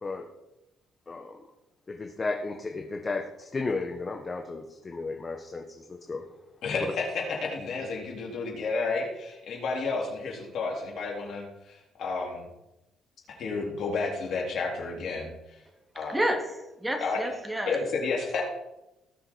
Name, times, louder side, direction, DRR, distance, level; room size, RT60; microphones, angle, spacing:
voice 1, 1.1-1.4 1.9-6.2 6.8-6.9, left 3 dB, 30° left, 4 dB, 1.4 m, -34 dB
voice 2, 6.6-12.4 13.3-15.6 15.9-16.2 17.0-17.2 17.7-18.4, left 4 dB, 65° left, 0 dB, 3.8 m, -31 dB
voice 3, 16.1-17.8, right 1 dB, 10° right, 2 dB, 3.1 m, -30 dB
18.5 x 6.3 x 4.8 m, 0.94 s
supercardioid pair, 70°, 0 cm